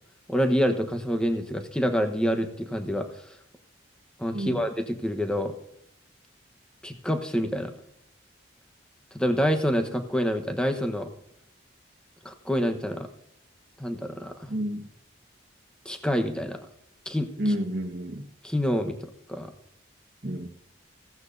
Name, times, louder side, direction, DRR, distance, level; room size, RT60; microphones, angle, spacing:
voice 1, 0.3-3.1 4.2-5.5 6.8-7.7 9.1-11.1 12.2-13.1 13.8-14.5 15.8-16.6 17.0-17.3 18.4-19.0 19.3-19.5, equal, 5° left, 6 dB, 1.1 m, -27 dB
voice 2, 14.5-14.9 17.4-18.3 20.2-20.5, equal, 50° right, 3 dB, 1.4 m, -30 dB
15.5 x 15.0 x 2.7 m, 0.75 s
head